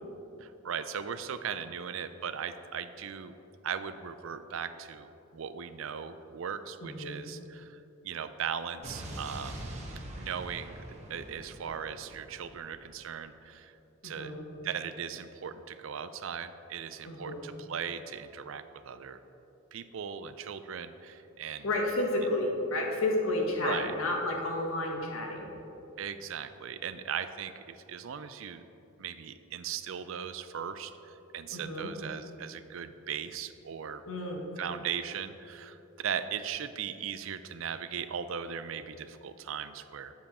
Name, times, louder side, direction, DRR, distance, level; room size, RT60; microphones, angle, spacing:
voice 1, 0.4-3.3 3.6-9.6 10.2-10.8 11.1-13.7 14.0-14.3 14.6-19.2 19.7-21.7 23.6-23.9 26.0-28.6 29.0-34.0 34.6-40.1, right 7 dB, 65° right, 12 dB, 0.4 m, -38 dB
voice 2, 6.8-7.2 14.0-14.4 17.0-17.4 21.4-25.6 31.5-31.9 34.0-34.4, left 2 dB, 75° left, 0 dB, 1.4 m, -31 dB
Explosion, 8.8-12.9, right 1 dB, 35° right, 1.1 m, -43 dB
9.4 x 7.5 x 4.2 m, 2.9 s
head